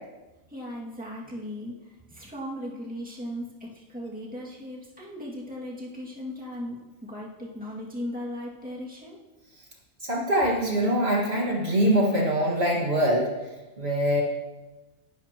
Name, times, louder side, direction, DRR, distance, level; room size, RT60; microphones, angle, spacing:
voice 1, 0.5-9.2, left 1 dB, 5° right, -4 dB, 2.2 m, -37 dB
voice 2, 10.0-13.3 13.8-14.2, equal, 45° right, -3 dB, 2.2 m, -23 dB
19.5 x 11.5 x 3.0 m, 1.1 s
omnidirectional pair, 1.5 m